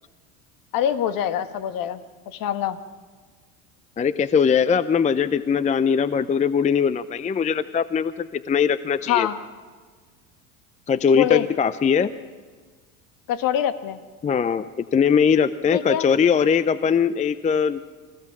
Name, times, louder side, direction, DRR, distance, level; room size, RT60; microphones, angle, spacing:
voice 1, 0.7-2.0 2.3-2.8 9.1-9.3 11.1-11.5 13.3-14.0 15.7-16.1, left 10 dB, 50° left, 10 dB, 1.6 m, -24 dB
voice 2, 4.0-9.3 10.9-12.1 14.2-17.8, left 6 dB, 15° left, 15 dB, 0.6 m, -21 dB
28.0 x 16.0 x 6.0 m, 1.5 s
hypercardioid pair, 80°, 43 cm